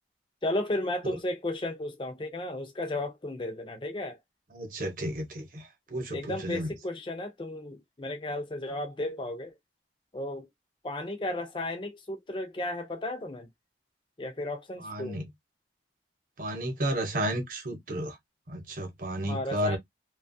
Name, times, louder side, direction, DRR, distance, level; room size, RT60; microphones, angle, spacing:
voice 1, 0.4-4.2 6.1-9.5 10.1-10.5 10.8-13.5 14.2-15.2 19.3-19.8, left 1 dB, 25° left, 0.5 m, -34 dB
voice 2, 4.5-6.7 14.8-15.3 16.4-18.2 18.5-19.8, right 1 dB, 45° right, 0.9 m, -32 dB
2.9 x 2.3 x 2.6 m
head